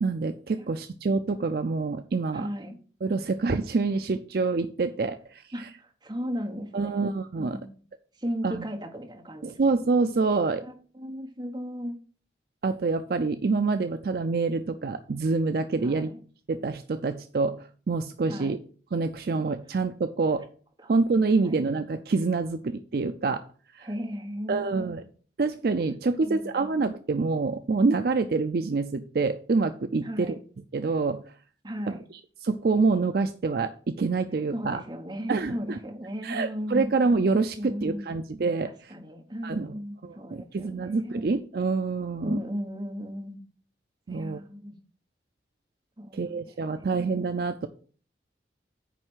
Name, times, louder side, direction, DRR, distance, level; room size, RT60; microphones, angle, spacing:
voice 1, 0.0-2.5 3.0-5.7 6.7-7.6 8.4-8.7 9.4-10.6 12.6-16.1 16.5-18.6 18.9-20.5 20.9-23.4 23.7-23.9 24.5-25.0 25.4-30.4 30.7-31.2 31.9-32.0 32.4-34.8 35.3-35.8 36.2-38.9 39.4-39.7 40.0-42.4 44.1-44.4 46.1-47.7, right 4 dB, 55° right, 8 dB, 0.4 m, -26 dB
voice 2, 2.3-2.8 5.5-7.0 7.4-7.7 8.2-9.6 10.6-11.9 15.8-16.2 18.3-18.6 20.8-20.9 21.3-21.6 23.8-24.9 26.2-26.7 30.0-30.4 31.6-32.0 34.5-36.9 37.6-38.2 38.9-41.3 42.2-43.4 44.1-44.8 46.0-47.2, equal, 25° right, 3 dB, 1.1 m, -36 dB
9.1 x 3.3 x 6.2 m, 0.43 s
head